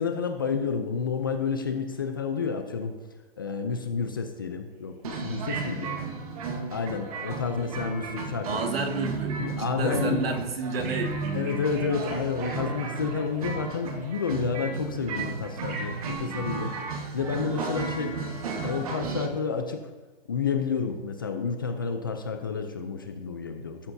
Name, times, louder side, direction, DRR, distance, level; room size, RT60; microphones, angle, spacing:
voice 1, 0.0-2.9 3.4-6.0 6.7-8.6 9.4-10.3 11.3-16.7 17.1-18.1 18.6-19.8 20.3-23.8, left 5 dB, 20° left, 6 dB, 0.5 m, -30 dB
sound 1, 5.0-19.3, right 4 dB, 35° right, 1.3 m, -34 dB
Telephone, 5.5-6.0 10.8-13.7 15.6-16.1, right 3 dB, 15° right, 0.9 m, -40 dB
voice 2, 8.5-11.3, right 3 dB, 65° right, 4 dB, 1.9 m, -30 dB
14.0 x 12.5 x 2.7 m, 1.2 s
hypercardioid pair, 170°, 31 cm